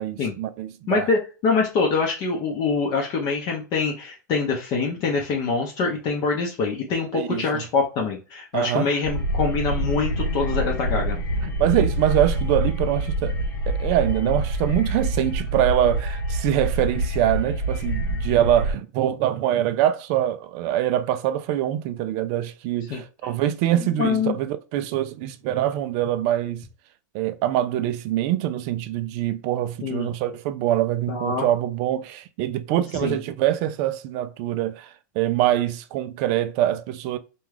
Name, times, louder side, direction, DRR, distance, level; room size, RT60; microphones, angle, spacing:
voice 1, 0.0-1.1 7.1-7.6 8.5-8.9 11.4-13.4 13.7-26.7 27.1-37.2, right 12 dB, 45° right, 0.3 m, -24 dB
voice 2, 0.9-11.2 22.9-23.0 23.7-24.4 29.8-30.1 31.1-31.5 33.0-33.2, left 4 dB, 40° left, 0.6 m, -25 dB
sound 1, 9.0-18.7, right 1 dB, 85° left, 1.0 m, -26 dB
2.3 x 2.2 x 3.2 m
hypercardioid pair, 115°, 10 cm